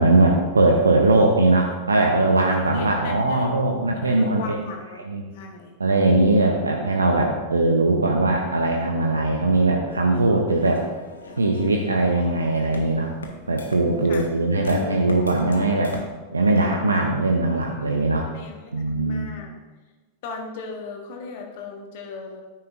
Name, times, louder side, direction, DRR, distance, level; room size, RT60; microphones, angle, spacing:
voice 1, 0.0-4.6 5.0-5.2 5.8-10.8 11.4-13.1 13.5-16.0 16.3-18.3 18.7-19.3, right 2 dB, 75° right, 1 dB, 0.7 m, -20 dB
voice 2, 2.7-3.5 4.0-5.0 5.3-5.7 10.3-10.4 14.1-14.2 18.3-18.7 19.0-19.5 20.2-22.4, left 4 dB, 50° left, 2 dB, 1.4 m, -37 dB
sound 1, 10.5-16.1, left 3 dB, 70° left, 1.0 m, -39 dB
9.3 x 8.8 x 2.6 m, 1.2 s
figure-of-eight pair, 90°, 0 cm